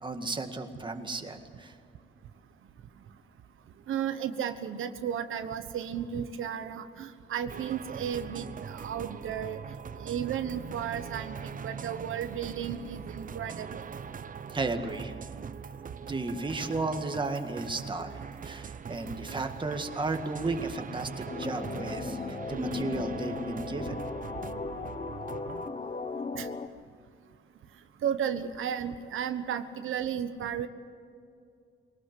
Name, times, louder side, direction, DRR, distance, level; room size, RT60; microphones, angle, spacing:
voice 1, 0.0-1.7 14.5-15.1 16.0-24.0, right 3 dB, 25° right, 5 dB, 1.9 m, -34 dB
voice 2, 3.9-9.6 10.0-11.4 11.6-13.8 26.4-26.5 28.0-30.7, right 8 dB, 80° right, 8 dB, 1.2 m, -34 dB
sound 1, 7.5-25.7, right 6 dB, 40° right, 0.8 m, -42 dB
sound 2, 21.3-26.7, left 4 dB, 30° left, 1.0 m, -36 dB
22.0 x 19.0 x 7.8 m, 2.4 s
cardioid pair, 125°, 20 cm